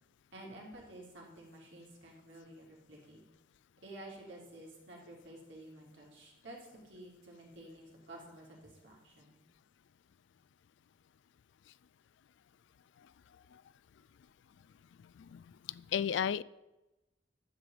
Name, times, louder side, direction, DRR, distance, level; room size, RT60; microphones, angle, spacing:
voice 1, 0.3-3.2 3.8-6.6 6.8-9.3, right 1 dB, 75° right, -2 dB, 3.2 m, -51 dB
voice 2, 15.2-16.4, left 8 dB, 70° left, 20 dB, 0.3 m, -34 dB
11.0 x 4.9 x 7.9 m, 1.0 s
head